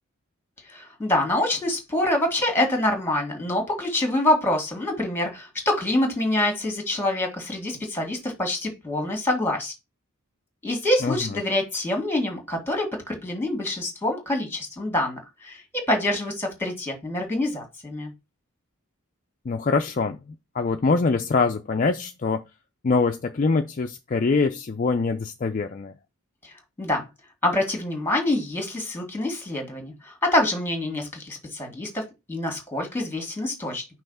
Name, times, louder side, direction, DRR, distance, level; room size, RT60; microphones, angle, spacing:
voice 1, 0.7-9.7 10.6-18.1 26.4-27.1 27.4-33.9, left 1 dB, 10° left, 1.8 m, -26 dB
voice 2, 19.5-22.4 22.8-25.9, left 4 dB, 40° left, 0.4 m, -24 dB
5.7 x 3.1 x 5.4 m
head